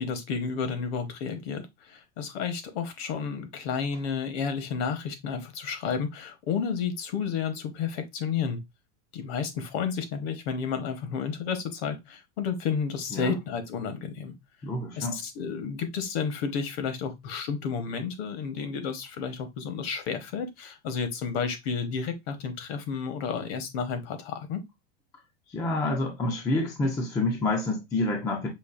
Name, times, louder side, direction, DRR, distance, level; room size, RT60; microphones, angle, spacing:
voice 1, 0.0-1.6 1.9-8.6 9.1-14.3 15.0-24.6, left 6 dB, 55° left, 1.0 m, -31 dB
voice 2, 14.6-15.2 25.5-28.5, left 2 dB, 10° left, 0.4 m, -28 dB
5.3 x 2.4 x 2.4 m
supercardioid pair, 155°, 36 cm